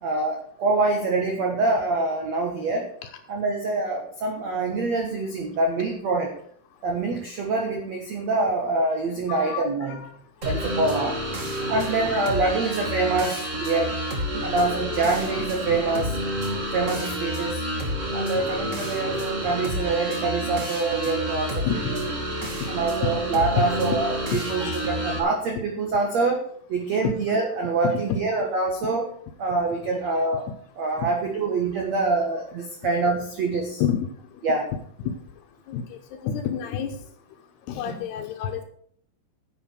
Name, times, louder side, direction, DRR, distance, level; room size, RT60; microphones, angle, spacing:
voice 1, 0.0-2.9 3.3-6.3 6.8-10.0 10.4-11.1 11.7-14.0 14.4-16.2 16.7-17.6 18.1-21.7 22.7-26.4 26.7-29.1 29.4-30.5 30.8-33.8 34.4-34.7 37.9-38.0, right 3 dB, 75° right, 1 dB, 1.5 m, -25 dB
voice 2, 9.3-10.1 10.8-11.2 11.6-12.3 16.9-17.0 21.6-22.0 23.6-23.7 24.6-24.8 31.0-31.1 33.8-34.1 35.0-35.1 35.7-36.0 36.2-37.0 37.7-38.6, left 8 dB, 75° left, 6 dB, 2.6 m, -29 dB
sound 1, 10.4-25.2, equal, 55° right, 0.8 m, -29 dB
10.5 x 7.9 x 6.4 m, 0.62 s
omnidirectional pair, 5.4 m